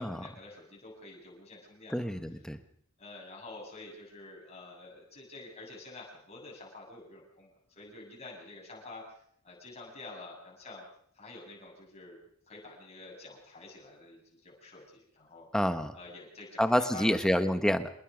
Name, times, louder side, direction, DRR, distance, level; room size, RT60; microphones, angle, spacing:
voice 1, 0.0-1.9 3.0-9.0 9.4-10.8 11.2-12.2 12.5-15.5 15.9-17.2, left 2 dB, 30° left, -2 dB, 7.5 m, -48 dB
voice 2, 1.9-2.6 15.5-16.0 16.6-17.9, equal, 5° left, 9 dB, 1.2 m, -28 dB
26.5 x 20.5 x 5.3 m, 0.65 s
head